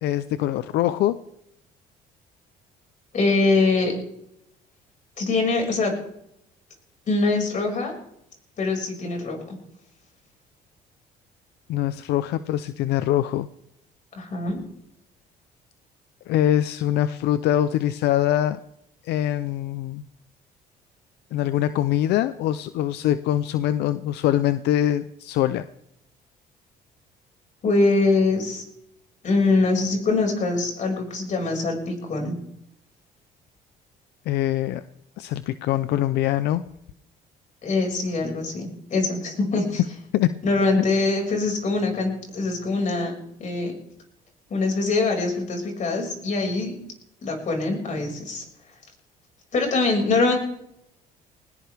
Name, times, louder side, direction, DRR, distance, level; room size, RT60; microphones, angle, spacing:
voice 1, 0.0-1.2 11.7-13.5 16.3-18.6 19.0-20.0 21.3-25.6 34.3-34.8 35.2-36.6 40.1-40.4, left 12 dB, 80° left, 13 dB, 0.6 m, -23 dB
voice 2, 3.1-3.9 5.2-5.9 7.1-7.9 8.6-9.6 14.2-14.6 27.6-28.6 29.2-32.4 37.6-39.8 40.4-43.1 43.4-43.7 44.5-46.8 47.2-48.4 49.5-50.3, left 3 dB, 45° left, 2 dB, 5.9 m, -23 dB
20.0 x 18.5 x 3.5 m, 0.78 s
cardioid pair, 110°, 17 cm